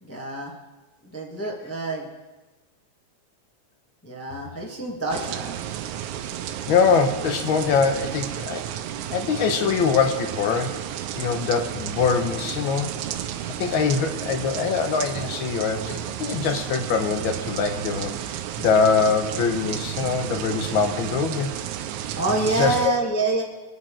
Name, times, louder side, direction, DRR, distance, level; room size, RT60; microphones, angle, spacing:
voice 1, 0.0-0.5 1.0-2.1 4.0-5.6 22.2-23.4, right 2 dB, 15° left, -2 dB, 0.4 m, -26 dB
sound 1, 5.1-22.9, right 11 dB, 80° right, 2.1 m, -32 dB
voice 2, 6.7-8.6 9.1-10.8 11.1-12.9 13.6-21.5 22.5-22.7, left 5 dB, 70° left, 6 dB, 1.2 m, -23 dB
23.0 x 9.3 x 3.8 m, 1.2 s
omnidirectional pair, 3.5 m